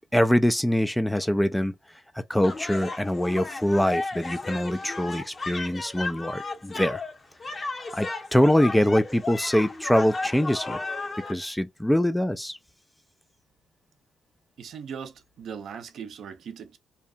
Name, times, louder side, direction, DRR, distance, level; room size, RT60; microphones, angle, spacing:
voice 1, 0.1-1.7 2.1-7.0 7.6-10.8 11.3-12.6, equal, 5° left, 0.3 m, -24 dB
sound 1, 2.4-11.3, left 3 dB, 40° left, 0.8 m, -34 dB
voice 2, 14.6-16.8, right 7 dB, 65° right, 0.5 m, -39 dB
2.8 x 2.1 x 2.4 m
supercardioid pair, 55°, 0 cm